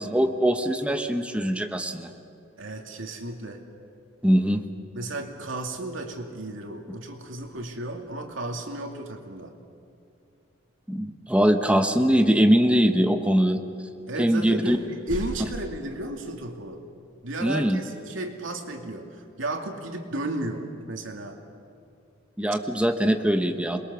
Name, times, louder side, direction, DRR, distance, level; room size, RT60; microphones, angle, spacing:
voice 1, 0.0-2.1 4.2-4.6 10.9-13.6 14.2-14.8 17.4-17.8 22.4-23.8, equal, 5° right, 6 dB, 1.0 m, -22 dB
voice 2, 2.6-3.6 4.9-9.5 14.1-16.8 17.2-21.4, right 2 dB, 85° right, 3 dB, 2.5 m, -34 dB
sound 1, 7.3-8.2 11.7-11.8 13.9-14.0 14.6-15.7, equal, 50° right, 5.0 m, -41 dB
27.5 x 21.5 x 7.0 m, 2.5 s
head